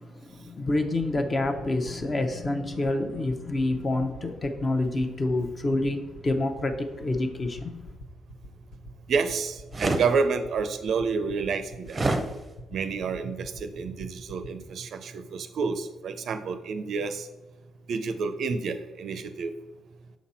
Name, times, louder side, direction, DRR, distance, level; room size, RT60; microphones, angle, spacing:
voice 1, 0.0-7.9, left 2 dB, 30° left, 0.7 m, -28 dB
sound 1, 1.0-14.5, left 1 dB, 65° left, 0.9 m, -44 dB
voice 2, 9.1-12.0 12.7-17.3 17.9-19.5, right 5 dB, 65° right, 0.4 m, -29 dB
sound 2, 9.7-10.1 11.9-12.3, right 2 dB, 25° right, 0.6 m, -25 dB
6.1 x 4.1 x 4.2 m
cardioid pair, 90°, 0 cm